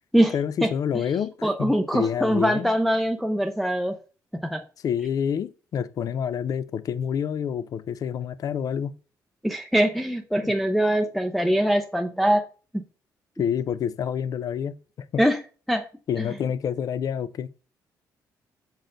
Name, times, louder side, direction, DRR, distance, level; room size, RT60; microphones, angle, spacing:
voice 1, 0.3-2.7 4.8-9.0 10.4-10.5 13.4-15.2 16.1-17.5, left 8 dB, 60° left, 0.4 m, -28 dB
voice 2, 1.4-4.0 4.4-4.6 9.4-12.5 12.7-12.8 15.2-15.4 15.7-15.8, equal, ahead, 0.5 m, -22 dB
6.5 x 4.1 x 3.8 m
cardioid pair, 105°, 7 cm